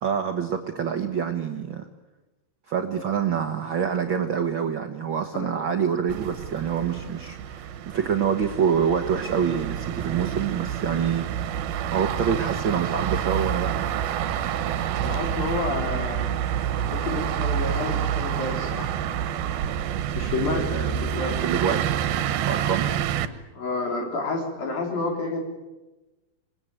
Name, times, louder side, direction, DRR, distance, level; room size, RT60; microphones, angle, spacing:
voice 1, 0.0-1.8 2.7-11.6 11.9-13.9 20.6-20.9 21.4-22.0 22.4-23.0, right 7 dB, 55° right, 5 dB, 1.3 m, -26 dB
sound 1, 6.1-23.3, right 9 dB, 80° right, 2.9 m, -28 dB
voice 2, 15.0-16.3 16.9-19.0 20.1-21.4 23.5-25.4, left 3 dB, 70° left, 2 dB, 5.8 m, -30 dB
26.5 x 19.5 x 9.2 m, 1.1 s
omnidirectional pair, 4.2 m